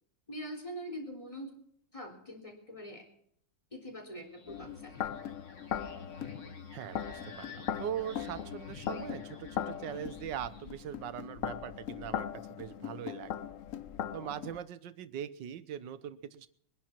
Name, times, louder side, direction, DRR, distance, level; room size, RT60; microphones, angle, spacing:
voice 1, 0.3-1.5 1.9-3.0 3.7-5.0, equal, 15° left, 0 dB, 3.5 m, -43 dB
sound 1, 4.2-10.8, left 3 dB, 40° left, 1.8 m, -50 dB
sound 2, 4.5-14.6, left 9 dB, 60° left, 0.9 m, -39 dB
voice 2, 6.7-13.5 14.1-16.5, right 9 dB, 70° right, 14 dB, 1.5 m, -41 dB
23.5 x 10.5 x 4.5 m, 0.67 s
omnidirectional pair, 2.1 m